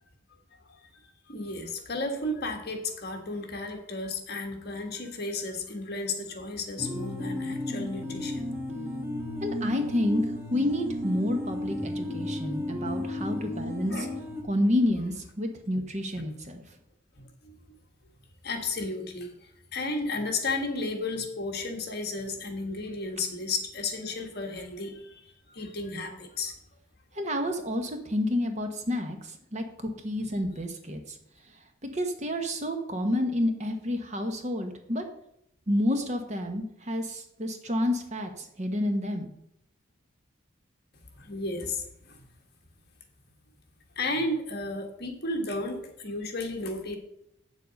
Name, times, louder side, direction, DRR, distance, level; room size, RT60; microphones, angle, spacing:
voice 1, 1.3-8.4 8.9-9.2 13.1-13.3 13.9-14.1 17.1-17.6 18.4-26.6 30.2-30.3 41.1-42.3 43.9-47.0, left 2 dB, 50° left, 3 dB, 1.5 m, -33 dB
sound 1, 6.8-14.4, left 1 dB, 10° right, 1.3 m, -33 dB
voice 2, 9.4-14.1 14.5-16.6 27.1-31.2 31.8-35.0 35.7-39.3, left 1 dB, 35° right, 5 dB, 1.0 m, -29 dB
8.0 x 7.2 x 5.2 m, 0.77 s
head